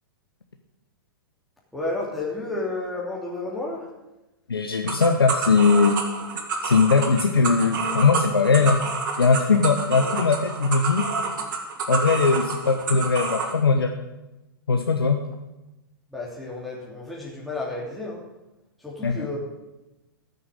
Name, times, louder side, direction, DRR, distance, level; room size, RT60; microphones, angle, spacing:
voice 1, 1.7-3.9 9.9-10.2 16.1-18.2 18.8-19.4, left 2 dB, ahead, -6 dB, 2.9 m, -31 dB
voice 2, 4.5-6.0 6.6-8.9 9.2-11.1 11.9-13.9 14.7-15.2 19.0-19.3, left 4 dB, 85° left, 5 dB, 1.0 m, -20 dB
sound 1, 4.9-13.5, right 4 dB, 60° right, 2.7 m, -28 dB
14.0 x 6.9 x 8.0 m, 1.0 s
figure-of-eight pair, 110°, 12 cm